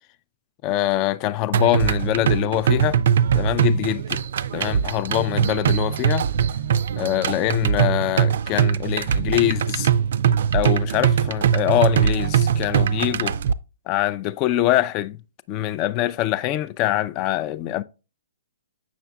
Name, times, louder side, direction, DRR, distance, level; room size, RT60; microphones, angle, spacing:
voice 1, 0.6-3.0 3.3-4.2 4.5-6.3 7.0-9.9 10.5-13.4 13.9-15.2 15.5-17.8, left 14 dB, 35° left, 0.3 m, -24 dB
sound 1, 1.5-13.5, right 8 dB, 60° right, 0.3 m, -21 dB
7.3 x 5.8 x 2.3 m
hypercardioid pair, 130°, 0 cm